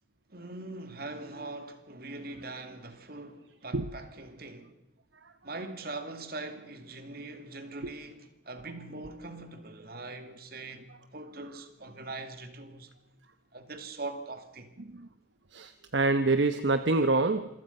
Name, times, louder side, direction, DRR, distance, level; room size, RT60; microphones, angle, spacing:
voice 1, 0.3-4.7 5.4-12.9 13.5-14.7, right 2 dB, 50° right, 2.3 m, -42 dB
voice 2, 15.5-17.5, right 3 dB, 65° right, 1.0 m, -26 dB
27.0 x 23.0 x 5.5 m
head